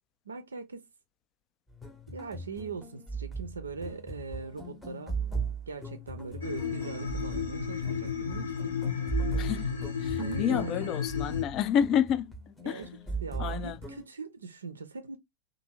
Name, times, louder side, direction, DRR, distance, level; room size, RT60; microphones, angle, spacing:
voice 1, 0.3-0.9 2.1-5.2 5.7-8.8 10.2-10.8 12.6-12.9 13.2-15.2, right 4 dB, 75° right, 0.4 m, -40 dB
sound 1, 1.7-14.1, right 4 dB, 10° left, 0.7 m, -38 dB
sound 2, 6.4-11.4, left 7 dB, 75° left, 0.9 m, -33 dB
voice 2, 9.4-9.7 10.0-12.8 13.4-13.8, left 9 dB, 35° left, 0.3 m, -29 dB
2.6 x 2.6 x 2.7 m
figure-of-eight pair, 90°, 0 cm